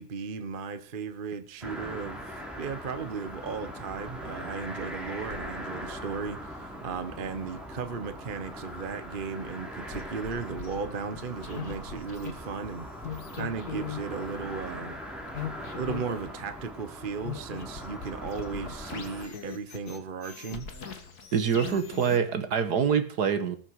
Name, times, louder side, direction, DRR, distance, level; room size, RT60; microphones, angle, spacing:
voice 1, 0.0-12.9 13.3-15.0 15.8-20.7, right 5 dB, 35° right, 1.0 m, -36 dB
sound 1, 1.6-19.3, equal, ahead, 4.1 m, -41 dB
sound 2, 5.2-5.4 9.9-10.8 11.2-12.3 13.0-16.7 17.2-22.2, left 7 dB, 50° left, 2.1 m, -40 dB
voice 2, 21.3-23.6, right 7 dB, 55° right, 1.7 m, -25 dB
19.5 x 9.1 x 4.8 m
omnidirectional pair, 2.1 m